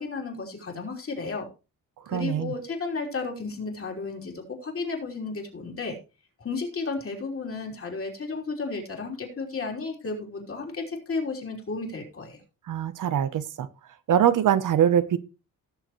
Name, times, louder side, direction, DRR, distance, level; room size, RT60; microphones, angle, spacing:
voice 1, 0.0-1.5 2.1-6.0 6.4-12.4, left 4 dB, 40° left, 2 dB, 3.5 m, -33 dB
voice 2, 2.1-2.5 12.7-13.7 14.1-15.2, right 9 dB, 65° right, 14 dB, 0.8 m, -23 dB
17.5 x 6.8 x 3.1 m, 0.30 s
cardioid pair, 115°, 34 cm